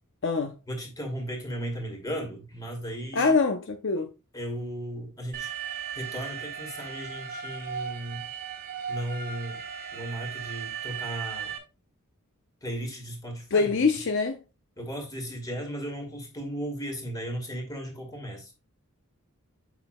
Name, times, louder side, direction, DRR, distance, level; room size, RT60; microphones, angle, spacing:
voice 1, 0.7-3.3 4.3-8.2 8.9-9.6 9.9-11.5 12.6-13.7 14.8-18.5, equal, 15° left, 2.0 m, -36 dB
voice 2, 3.1-4.1 13.5-14.4, left 4 dB, 60° left, 0.6 m, -24 dB
Alarm, 5.3-11.6, right 8 dB, 40° right, 1.4 m, -36 dB
7.7 x 5.9 x 2.2 m
head